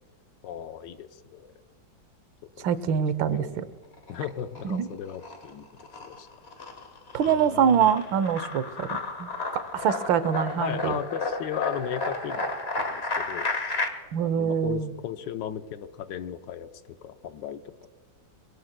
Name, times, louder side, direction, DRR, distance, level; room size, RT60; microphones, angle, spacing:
voice 1, 0.4-1.5 2.6-2.7 3.2-3.6 4.1-5.7 6.0-6.3 7.3-7.9 10.6-13.8 14.2-16.7 17.0-17.9, left 9 dB, 75° left, 10 dB, 1.3 m, -36 dB
voice 2, 2.6-3.6 4.6-4.9 7.1-11.0 14.1-14.9, right 8 dB, 90° right, 14 dB, 1.5 m, -25 dB
sound 1, 3.9-4.8 5.1-13.9, left 3 dB, 35° left, 1.5 m, -32 dB
24.5 x 17.5 x 2.2 m, 1.5 s
omnidirectional pair, 2.0 m